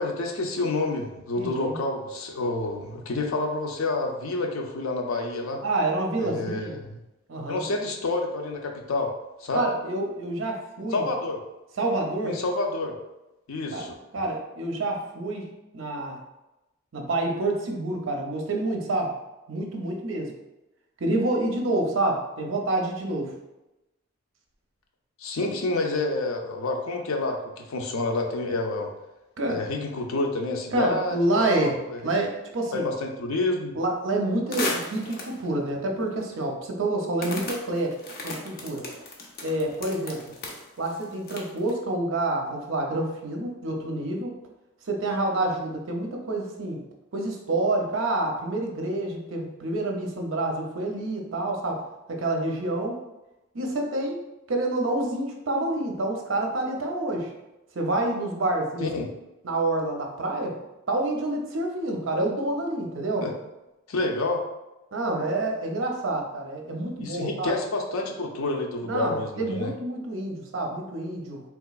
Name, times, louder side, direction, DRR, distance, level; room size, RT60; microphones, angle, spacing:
voice 1, 0.0-5.6 6.2-7.0 7.5-9.1 9.4-9.7 10.9-11.4 12.2-12.9 13.5-13.9 25.2-28.9 29.5-32.1 32.7-33.8 58.8-59.1 63.2-63.3 63.9-64.4 67.0-69.7, left 2 dB, 85° left, 2 dB, 0.5 m, -28 dB
voice 2, 1.4-1.8 5.6-6.8 7.3-7.6 9.5-11.1 11.8-12.4 13.7-13.9 14.1-15.4 15.7-16.2 16.9-19.1 19.5-20.3 21.0-23.3 29.4-29.6 30.7-31.8 32.0-32.9 33.7-37.9 38.2-38.8 39.4-40.2 40.8-44.3 44.9-46.8 47.1-51.8 52.1-53.0 53.5-54.2 54.5-57.3 57.7-58.9 59.4-60.6 60.9-63.3 64.9-67.5 68.8-71.4, right 2 dB, 65° right, 1 dB, 0.6 m, -28 dB
sound 1, 34.5-35.5 36.1-36.2 37.2-41.7, left 2 dB, 50° left, 0.6 m, -35 dB
3.6 x 2.9 x 2.3 m, 0.98 s
head